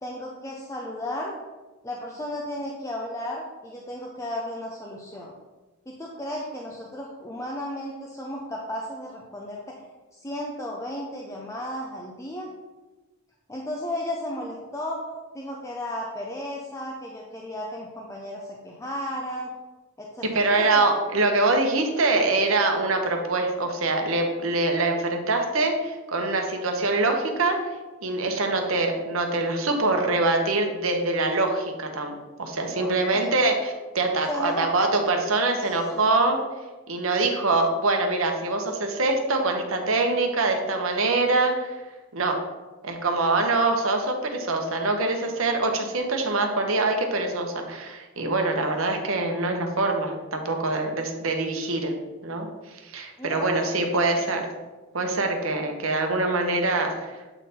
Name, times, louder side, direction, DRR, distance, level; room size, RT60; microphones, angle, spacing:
voice 1, 0.0-1.4 1.8-5.3 5.9-9.6 10.1-12.5 13.5-15.0 15.3-19.5 20.0-20.9 26.5-26.6 32.6-33.5 34.3-34.7 35.6-36.1 48.7-48.8 53.2-53.8 54.2-54.3, left 1 dB, 15° left, -2 dB, 0.6 m, -34 dB
voice 2, 20.2-27.6 28.0-32.1 32.4-36.4 36.9-41.8 42.1-42.4 42.8-51.9 52.2-54.4 54.9-57.1, right 2 dB, 70° right, 4 dB, 1.0 m, -24 dB
8.0 x 3.8 x 4.3 m, 1.2 s
head